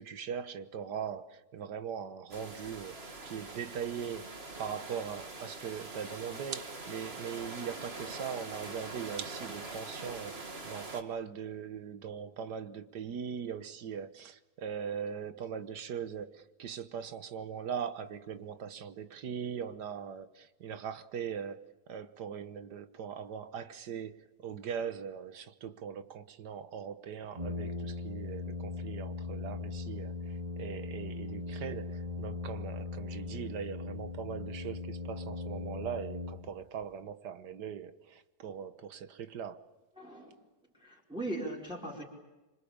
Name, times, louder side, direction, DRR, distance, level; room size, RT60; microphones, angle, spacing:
voice 1, 0.0-39.7, right 7 dB, 85° right, 1.7 m, -40 dB
sound 1, 2.3-11.0, right 3 dB, 35° right, 2.3 m, -44 dB
Brass instrument, 27.3-36.8, left 3 dB, 20° right, 2.6 m, -39 dB
voice 2, 40.0-40.3 40.8-42.0, right 1 dB, 5° right, 4.9 m, -39 dB
26.5 x 25.5 x 8.7 m
omnidirectional pair, 1.8 m